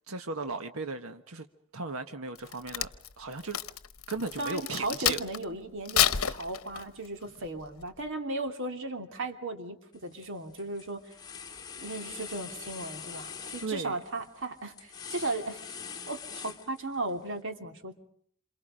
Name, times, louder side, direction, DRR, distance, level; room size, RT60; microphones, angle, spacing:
voice 1, 0.1-1.5 1.7-2.9 3.2-3.6 4.1-5.2 13.6-14.0, right 3 dB, 80° right, 7 dB, 1.4 m, -36 dB
Crack, 2.3-5.4 5.8-7.1 7.6-7.8, left 10 dB, 75° left, 1.0 m, -29 dB
voice 2, 4.4-11.0 11.8-15.6 16.1-17.9, right 2 dB, 65° right, 6 dB, 2.9 m, -36 dB
sound 1, 9.9-10.3 10.6-17.1, left 6 dB, 20° left, 2.8 m, -43 dB
28.5 x 27.5 x 5.1 m, 0.62 s
head